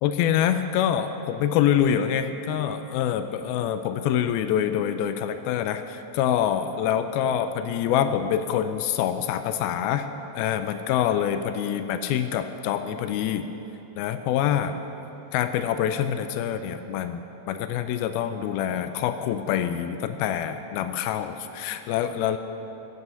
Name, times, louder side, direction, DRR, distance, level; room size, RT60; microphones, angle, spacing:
voice 1, 0.0-10.1 10.4-13.5 14.0-14.7 15.3-17.2 17.5-22.4, left 9 dB, 90° left, 9 dB, 2.4 m, -25 dB
17.0 x 8.3 x 7.1 m, 3.0 s
omnidirectional pair, 4.2 m